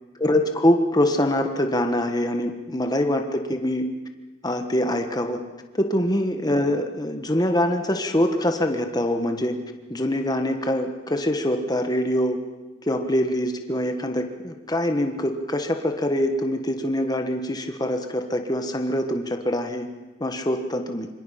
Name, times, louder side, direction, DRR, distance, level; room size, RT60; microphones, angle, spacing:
voice 1, 0.2-3.8 4.4-5.4 5.7-9.5 9.9-12.4 12.9-19.9 20.2-21.1, left 1 dB, 20° left, 5 dB, 1.5 m, -24 dB
27.0 x 24.5 x 5.8 m, 1.2 s
head